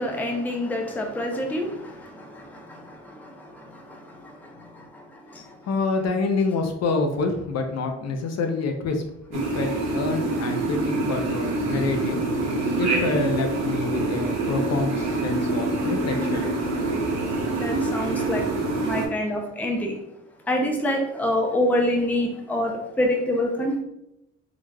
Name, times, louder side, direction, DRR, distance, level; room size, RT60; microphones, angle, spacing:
voice 1, 0.0-5.6 17.5-18.4 18.8-20.0 20.5-23.8, left 1 dB, 5° left, 1 dB, 0.4 m, -27 dB
voice 2, 5.6-9.0 9.3-12.5 12.8-16.4, left 3 dB, 60° left, 4 dB, 0.5 m, -27 dB
sound 1, 9.3-19.1, right 2 dB, 60° right, 0.8 m, -26 dB
3.2 x 2.4 x 2.2 m, 0.84 s
cardioid pair, 90°, 30 cm